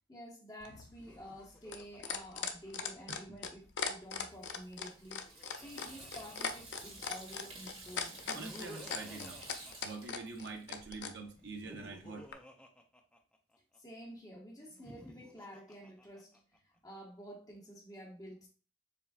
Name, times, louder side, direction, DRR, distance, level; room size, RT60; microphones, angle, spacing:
voice 1, 0.1-8.1 13.8-18.5, equal, 20° left, 1.3 m, -50 dB
sound 1, 0.6-11.1 12.3-12.4, left 6 dB, 80° left, 0.5 m, -39 dB
Laughter, 0.9-3.4 4.8-7.1 8.0-10.5 11.4-13.8 14.6-16.6, equal, 5° left, 0.4 m, -54 dB
Water tap faucet / Sink (filling or washing), 4.2-11.0, right 2 dB, 35° right, 1.5 m, -52 dB
voice 2, 8.3-9.4 9.8-12.3, right 3 dB, 80° right, 0.8 m, -45 dB
6.9 x 2.4 x 2.4 m
head